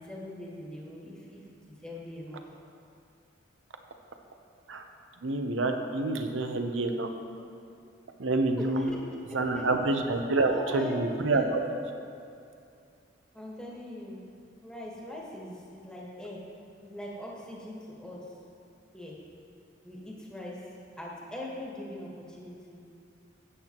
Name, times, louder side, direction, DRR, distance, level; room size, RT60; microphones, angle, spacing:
voice 1, 0.0-1.4 1.7-2.4 8.8-9.0 9.5-9.7 10.4-11.6 13.3-14.2 14.6-16.4 16.8-18.2 18.9-19.2 19.8-20.6 21.0-22.8, left 1 dB, 5° left, -4 dB, 1.4 m, -41 dB
voice 2, 5.2-7.1 8.2-8.9 9.3-11.6, right 2 dB, 90° right, 5 dB, 0.8 m, -27 dB
12.5 x 8.3 x 3.0 m, 2.5 s
head